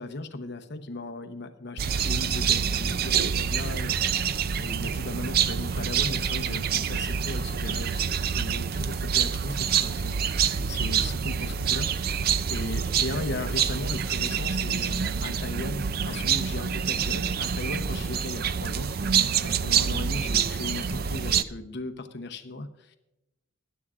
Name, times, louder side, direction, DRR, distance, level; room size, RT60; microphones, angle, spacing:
voice 1, 0.0-10.2 10.7-22.9, left 2 dB, 55° left, 7 dB, 0.8 m, -37 dB
sound 1, 1.8-21.4, right 7 dB, 50° right, 0.4 m, -27 dB
19.5 x 11.0 x 2.5 m, 0.93 s
head